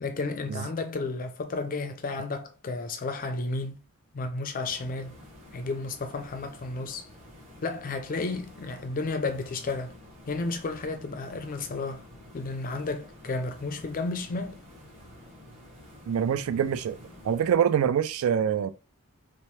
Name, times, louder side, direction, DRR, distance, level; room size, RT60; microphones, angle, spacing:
voice 1, 0.0-3.8 4.1-5.2 5.5-7.1 7.6-9.9 10.3-12.1 12.3-14.6, left 3 dB, 40° left, 0.4 m, -32 dB
sound 1, 4.6-17.6, left 1 dB, 30° right, 1.1 m, -50 dB
voice 2, 16.1-17.0 17.2-18.7, right 8 dB, 75° right, 0.3 m, -25 dB
2.8 x 2.1 x 3.1 m
head